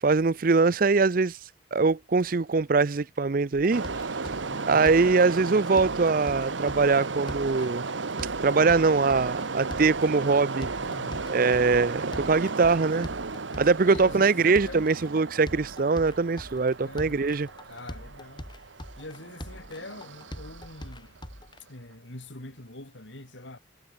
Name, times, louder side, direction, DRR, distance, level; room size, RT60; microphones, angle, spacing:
voice 1, 0.0-3.8 4.7-7.8 8.4-10.7 11.3-13.1 13.6-17.5, right 4 dB, 50° right, 0.5 m, -23 dB
sound 1, 3.6-21.6, equal, 25° left, 6.3 m, -42 dB
sound 2, 3.7-21.4, right 4 dB, 90° right, 1.2 m, -34 dB
voice 2, 4.5-4.9 10.8-11.3 12.1-12.4 13.9-14.9 16.8-17.2 17.7-18.5 19.0-21.2 21.7-23.6, left 2 dB, 80° left, 4.1 m, -43 dB
head